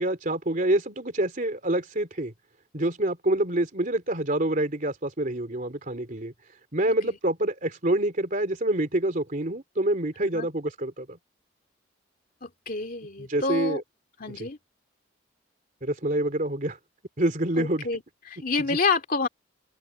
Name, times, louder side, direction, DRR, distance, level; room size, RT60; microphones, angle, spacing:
voice 1, 0.0-2.3 2.7-6.3 6.7-11.2 13.2-13.8 14.4-14.5 15.8-16.8 17.2-17.9, right 1 dB, 45° right, 3.2 m, -26 dB
voice 2, 12.4-13.8 14.2-14.6 17.6-18.0 18.3-19.3, left 4 dB, 45° left, 2.6 m, -28 dB
head